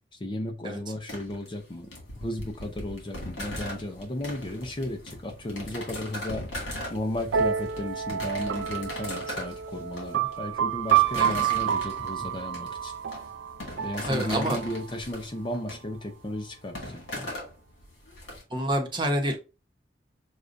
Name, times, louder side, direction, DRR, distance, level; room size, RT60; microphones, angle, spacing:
voice 1, 0.2-1.9 2.2-6.5 6.9-12.9 13.8-17.3, left 1 dB, 25° left, 0.6 m, -34 dB
sound 1, 1.1-18.4, left 1 dB, 70° left, 1.8 m, -39 dB
sound 2, 7.3-14.9, right 9 dB, 85° right, 0.4 m, -28 dB
voice 2, 11.2-11.5 14.1-14.6 18.5-19.4, right 1 dB, 25° right, 0.9 m, -28 dB
6.4 x 2.3 x 2.5 m
head